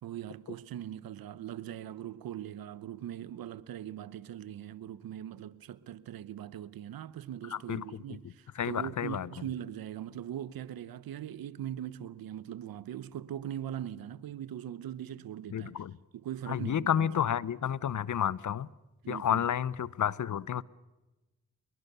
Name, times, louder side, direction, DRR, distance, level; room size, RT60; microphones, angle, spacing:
voice 1, 0.0-15.8 16.1-17.1 19.0-19.5, right 11 dB, 80° right, 1.0 m, -41 dB
voice 2, 7.5-7.8 8.6-9.3 15.5-15.9 16.5-18.7 19.1-20.6, left 9 dB, 60° left, 0.8 m, -30 dB
25.5 x 22.0 x 6.8 m
supercardioid pair, 40°, 35 cm